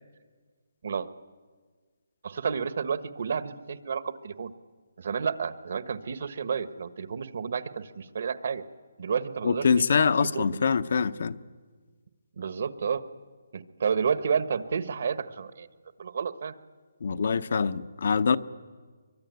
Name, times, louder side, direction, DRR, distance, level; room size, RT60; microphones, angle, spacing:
voice 1, 2.2-4.5 5.0-8.6 9.0-10.5 12.4-13.1 13.5-15.7 16.0-16.5, right 6 dB, 55° right, 1.4 m, -31 dB
voice 2, 9.4-11.4 17.0-18.4, left 5 dB, 60° left, 0.9 m, -24 dB
23.5 x 23.0 x 9.5 m
hypercardioid pair, 165°, 0 cm